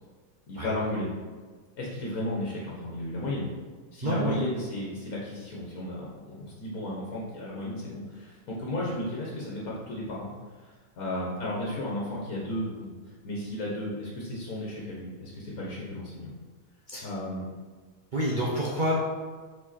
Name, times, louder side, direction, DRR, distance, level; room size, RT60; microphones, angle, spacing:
voice 1, 0.5-1.1 1.8-3.5 3.9-10.3 10.6-10.7 11.0-12.9 13.2-16.3 17.0-17.5, left 1 dB, 80° left, -5 dB, 1.5 m, -34 dB
voice 2, 4.0-4.3 16.9-17.1 18.1-19.0, equal, 40° right, -6 dB, 0.9 m, -27 dB
5.1 x 4.6 x 4.1 m, 1.4 s
omnidirectional pair, 1.5 m